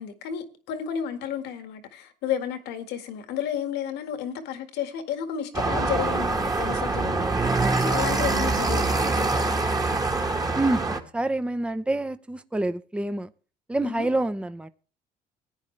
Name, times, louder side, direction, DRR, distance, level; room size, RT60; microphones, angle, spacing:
voice 1, 0.0-9.5 13.8-14.1, left 9 dB, 85° left, 1.9 m, -32 dB
sound 1, 5.5-11.0, right 3 dB, 20° right, 1.5 m, -24 dB
voice 2, 7.6-7.9 10.5-13.3 13.7-14.7, right 2 dB, 5° right, 0.7 m, -27 dB
16.5 x 9.8 x 3.3 m
cardioid pair, 110°, 17 cm